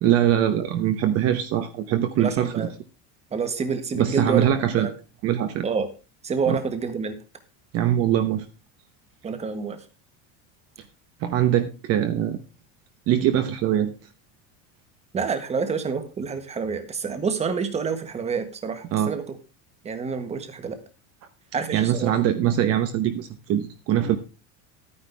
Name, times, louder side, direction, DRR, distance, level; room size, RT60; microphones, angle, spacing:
voice 1, 0.0-2.7 3.9-4.9 5.2-5.6 6.5-6.6 7.7-8.5 11.2-12.4 13.1-13.9 18.9-19.1 21.7-24.2, right 11 dB, 40° right, 8 dB, 1.0 m, -22 dB
voice 2, 2.2-2.7 3.3-4.4 4.8-4.9 5.6-5.9 6.2-7.2 9.2-9.8 15.1-19.4 19.8-20.8 21.5-22.2, right 5 dB, 15° right, 8 dB, 1.4 m, -28 dB
12.0 x 9.7 x 3.4 m, 0.31 s
cardioid pair, 160°, 37 cm